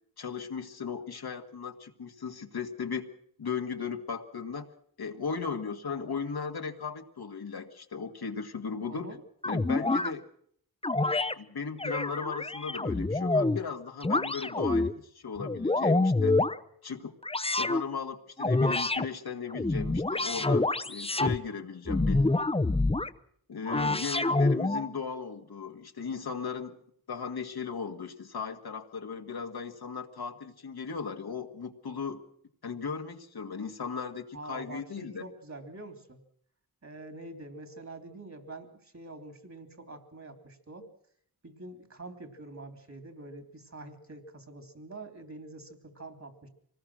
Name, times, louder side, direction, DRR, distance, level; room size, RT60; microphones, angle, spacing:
voice 1, 0.2-3.0 3.4-4.7 5.0-9.1 9.4-10.3 11.4-16.4 16.8-17.1 17.6-22.3 23.5-26.8 27.1-32.2 32.6-35.2, left 5 dB, 75° left, 4 dB, 1.9 m, -37 dB
voice 2, 8.9-9.2 34.3-36.2 36.8-40.9 41.4-46.5, right 2 dB, 45° right, 7 dB, 3.3 m, -45 dB
sound 1, 9.4-10.1 10.8-11.3 11.8-13.6 14.0-14.9 15.4-16.6 17.2-17.8 18.4-19.0 19.5-21.4 21.9-23.1 23.6-24.9, left 2 dB, 15° left, 0.8 m, -27 dB
24.5 x 19.0 x 6.3 m, 0.65 s
cardioid pair, 60°, 38 cm